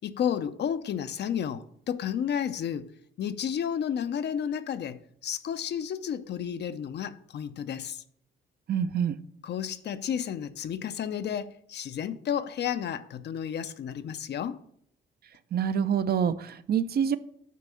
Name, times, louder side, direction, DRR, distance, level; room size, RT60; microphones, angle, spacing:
voice 1, 0.0-2.9 3.2-8.0 9.4-14.6, left 8 dB, 60° left, 0.6 m, -32 dB
voice 2, 8.7-9.2 15.5-17.2, right 8 dB, 50° right, 0.6 m, -26 dB
8.5 x 4.1 x 7.0 m
cardioid pair, 90°, 20 cm